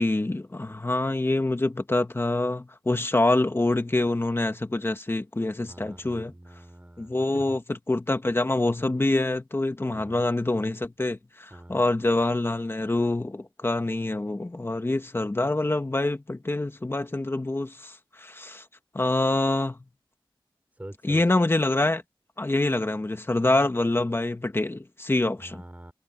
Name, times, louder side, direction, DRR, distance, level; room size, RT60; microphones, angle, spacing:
voice 1, 0.0-6.3 7.0-7.6 7.9-18.6 18.9-19.8 21.0-22.0 22.4-25.6, left 2 dB, 25° left, 1.9 m, -26 dB
voice 2, 5.7-7.6 9.9-10.3 11.5-11.8 20.7-21.4 25.4-25.9, right 1 dB, 15° right, 5.7 m, -44 dB
wide cardioid pair, 105°, 9 cm